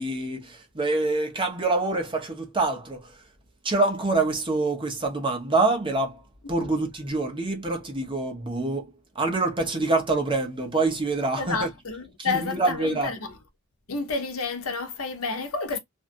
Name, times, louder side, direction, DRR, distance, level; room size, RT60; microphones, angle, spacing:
voice 1, 0.0-3.1 3.6-6.2 6.5-8.9 9.1-11.7 12.2-13.1, right 3 dB, 25° right, 1.0 m, -26 dB
voice 2, 11.4-13.4 13.9-15.8, left 4 dB, 80° left, 0.9 m, -30 dB
2.7 x 2.4 x 2.5 m
head